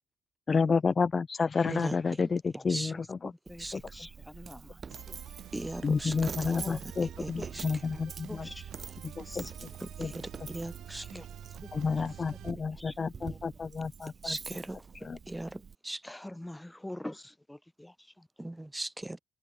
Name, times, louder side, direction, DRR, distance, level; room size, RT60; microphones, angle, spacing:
voice 1, 0.5-3.3 3.7-3.8 5.8-8.5 9.0-9.5 10.0-10.1 11.7-14.1 15.0-15.2, left 5 dB, 35° left, 0.9 m, -30 dB
voice 2, 1.6-2.3 2.7-2.9 3.6-3.8 5.5-6.5 6.8-6.9 7.2-7.7 9.8-11.1 14.2-14.9 15.3-16.0 18.4-19.2, right 1 dB, 10° right, 4.3 m, -38 dB
voice 3, 3.5-4.8 5.1-5.2 6.5-6.8 7.2-7.5 7.9-9.0 9.2-9.5 11.0-11.3 11.5-11.9 12.7-13.0 13.2-13.4 16.0-18.3, left 1 dB, 10° left, 3.6 m, -45 dB
Coin (dropping), 3.5-15.8, right 6 dB, 40° right, 1.4 m, -46 dB
sound 1, 4.9-12.5, right 12 dB, 80° right, 3.0 m, -48 dB
cardioid pair, 90°, 0 cm